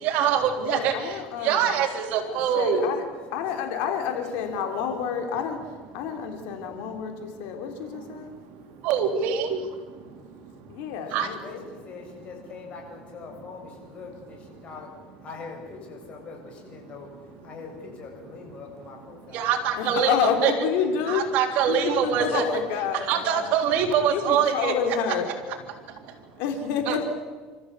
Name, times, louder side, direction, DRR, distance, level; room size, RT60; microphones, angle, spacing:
voice 1, 0.0-0.9 1.4-2.9 8.8-9.6 11.1-11.3 19.3-20.5 21.1-22.4 23.1-24.7 26.9-27.0, right 8 dB, 65° right, 5 dB, 3.6 m, -24 dB
voice 2, 0.6-1.6 2.2-3.0 3.3-5.6 5.9-8.3 10.7-11.7 14.7-14.9 19.8-21.4 21.7-23.0 24.0-25.3 26.4-27.0, left 7 dB, 75° left, 5 dB, 3.8 m, -29 dB
voice 3, 2.4-2.8 3.5-3.6 4.1-4.9 11.1-14.9 15.2-17.1 17.4-19.5 23.1-23.4, left 5 dB, 45° left, 1 dB, 7.8 m, -41 dB
29.0 x 14.5 x 8.5 m, 1.4 s
supercardioid pair, 110°, 3 cm